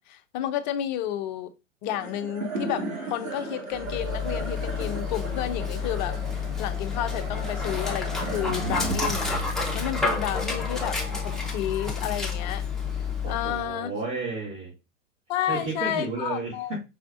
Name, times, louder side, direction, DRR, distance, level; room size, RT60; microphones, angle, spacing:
voice 1, 0.0-1.5 1.8-12.6 13.3-14.0 15.3-16.8, left 11 dB, 35° left, 0.6 m, -31 dB
sound 1, 1.9-12.4, right 2 dB, 75° right, 2.3 m, -36 dB
Dog, 3.7-13.7, left 5 dB, ahead, 0.9 m, -30 dB
voice 2, 13.2-14.7 15.4-16.8, right 3 dB, 50° right, 2.5 m, -32 dB
5.4 x 3.3 x 2.5 m
figure-of-eight pair, 100°, 39 cm